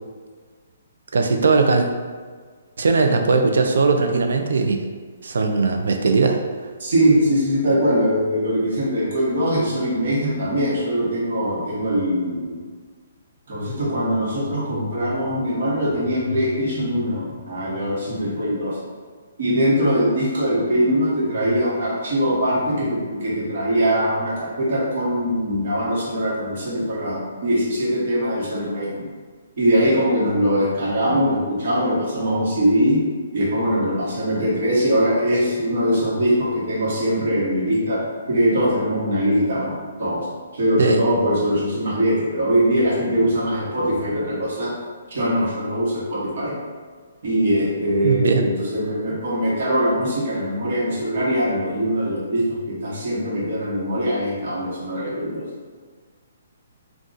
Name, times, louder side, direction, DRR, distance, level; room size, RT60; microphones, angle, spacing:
voice 1, 1.1-1.9 2.8-4.8 5.2-6.4 40.8-41.0 48.0-48.4, right 4 dB, 75° right, 5 dB, 0.4 m, -19 dB
voice 2, 6.8-12.6 13.5-18.8 19.4-29.1 29.6-33.0 33.3-39.7 40.0-40.3 40.5-44.7 45.1-46.5 47.2-55.4, equal, 55° right, -5 dB, 1.0 m, -22 dB
2.4 x 2.3 x 3.8 m, 1.6 s
hypercardioid pair, 170°, 0 cm